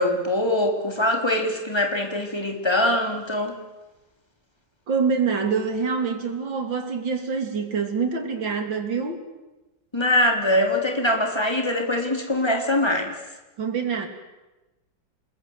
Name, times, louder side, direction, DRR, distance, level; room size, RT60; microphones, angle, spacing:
voice 1, 0.0-3.5 9.9-13.1, left 1 dB, 15° left, 2 dB, 3.4 m, -23 dB
voice 2, 4.9-9.2 13.6-14.1, right 5 dB, 85° right, 5 dB, 3.6 m, -25 dB
28.5 x 21.0 x 8.0 m, 1.1 s
omnidirectional pair, 2.0 m